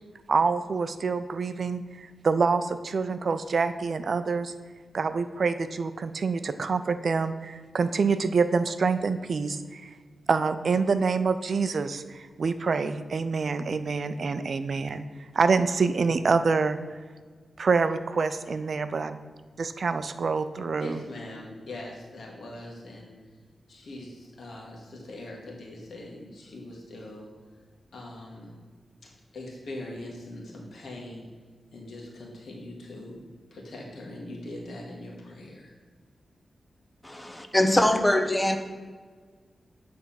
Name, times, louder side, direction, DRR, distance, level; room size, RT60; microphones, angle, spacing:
voice 1, 0.3-4.5 4.9-9.9 10.3-15.0 15.3-16.8 17.6-19.2 19.6-21.0, right 4 dB, 60° right, 11 dB, 0.4 m, -26 dB
voice 2, 20.8-23.1 23.7-27.3 27.9-28.6 29.3-31.3 31.7-33.2 33.5-35.7, left 1 dB, 80° left, -2 dB, 1.5 m, -41 dB
voice 3, 37.0-38.6, left 1 dB, 10° left, 7 dB, 0.7 m, -23 dB
8.7 x 3.5 x 5.6 m, 1.6 s
wide cardioid pair, 105°, 0 cm